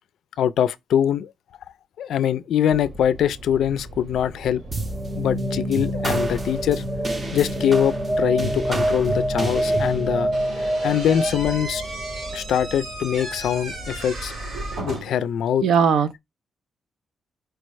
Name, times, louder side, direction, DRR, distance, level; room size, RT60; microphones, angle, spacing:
voice 1, 0.4-1.3 2.0-4.6 5.2-6.8 7.3-10.3 10.8-11.8 12.3-14.3 14.8-15.6, left 9 dB, 75° left, 0.3 m, -23 dB
sound 1, 2.7-14.8, right 1 dB, 45° right, 1.0 m, -39 dB
sound 2, 4.7-13.4, right 1 dB, 25° right, 0.6 m, -26 dB
Slam / Squeak, 10.3-15.3, right 2 dB, 85° right, 2.0 m, -35 dB
voice 2, 14.5-15.0 15.6-16.2, right 7 dB, 70° right, 0.5 m, -21 dB
4.6 x 2.1 x 4.6 m
wide cardioid pair, 170°, 0 cm